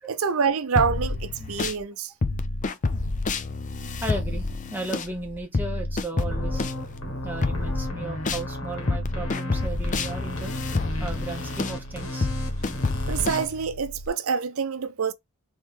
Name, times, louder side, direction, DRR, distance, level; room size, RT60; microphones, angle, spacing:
voice 1, 0.1-2.1 13.1-15.1, right 6 dB, 75° right, 0.5 m, -26 dB
sound 1, 0.8-1.8 2.2-8.5 8.9-14.1, left 3 dB, 35° left, 0.5 m, -29 dB
voice 2, 4.0-4.4 4.7-6.9 7.2-10.5 11.0-12.3, right 2 dB, 10° right, 1.0 m, -35 dB
sound 2, 6.1-13.5, left 1 dB, 75° left, 1.6 m, -34 dB
3.7 x 3.1 x 4.6 m
head